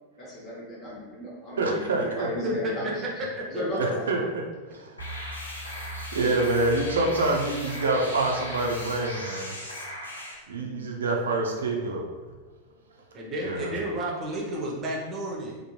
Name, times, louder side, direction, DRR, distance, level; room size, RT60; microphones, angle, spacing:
voice 1, 0.2-3.0 3.5-4.1, equal, 35° left, -4 dB, 1.1 m, -35 dB
voice 2, 1.6-2.3 3.8-4.2 4.7-5.0 5.9-9.5 10.5-12.1 13.4-13.7, right 2 dB, 65° right, 0 dB, 0.5 m, -26 dB
sound 1, 5.0-10.4, equal, 80° left, 0.7 m, -37 dB
voice 3, 13.1-15.6, right 1 dB, 25° right, -3 dB, 0.7 m, -31 dB
3.5 x 2.1 x 3.0 m, 1.2 s
figure-of-eight pair, 90°, 0 cm